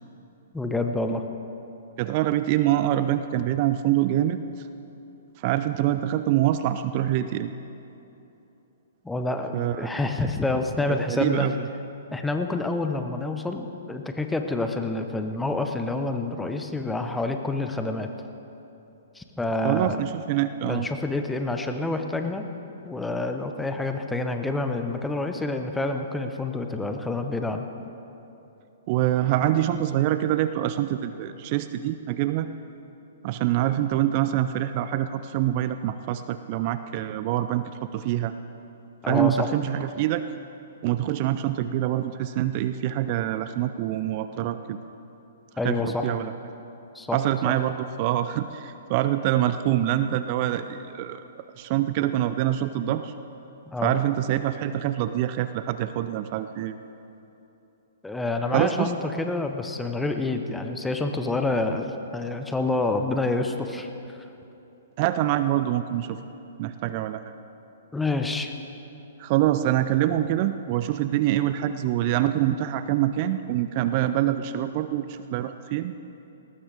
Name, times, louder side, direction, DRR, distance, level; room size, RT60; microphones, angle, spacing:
voice 1, 0.5-1.2 9.0-11.5 12.1-18.1 19.1-20.0 20.7-22.5 22.8-27.7 39.0-39.5 45.6-46.1 46.9-47.2 47.4-47.5 53.7-53.9 58.0-64.3 67.9-68.5, left 2 dB, 5° left, 5 dB, 1.1 m, -28 dB
voice 2, 2.0-4.4 5.4-7.5 9.5-9.9 11.1-11.5 19.6-20.9 28.9-32.5 33.2-38.3 39.0-40.2 40.8-44.8 45.6-46.3 47.1-53.1 53.8-56.7 58.5-58.9 65.0-66.2 66.6-67.2 69.2-75.9, right 13 dB, 40° right, 11 dB, 0.5 m, -25 dB
20.0 x 19.0 x 3.6 m, 3.0 s
figure-of-eight pair, 120°, 0 cm